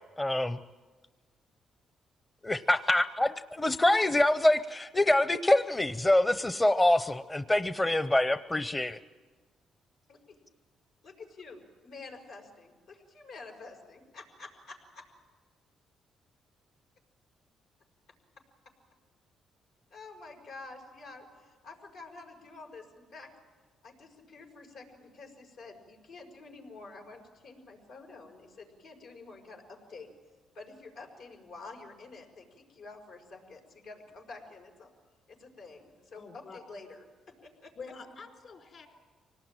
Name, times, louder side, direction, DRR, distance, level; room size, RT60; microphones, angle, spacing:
voice 1, 0.2-0.6 2.4-9.0, left 1 dB, 15° left, 11 dB, 0.7 m, -25 dB
voice 2, 11.0-15.0 19.9-23.3 23.8-30.1 30.5-34.9 35.3-37.7, left 3 dB, 85° left, 0 dB, 5.4 m, -49 dB
voice 3, 36.1-36.6 37.7-38.9, left 4 dB, 55° left, 4 dB, 4.4 m, -46 dB
25.0 x 19.0 x 9.0 m, 1.4 s
cardioid pair, 90°, 0 cm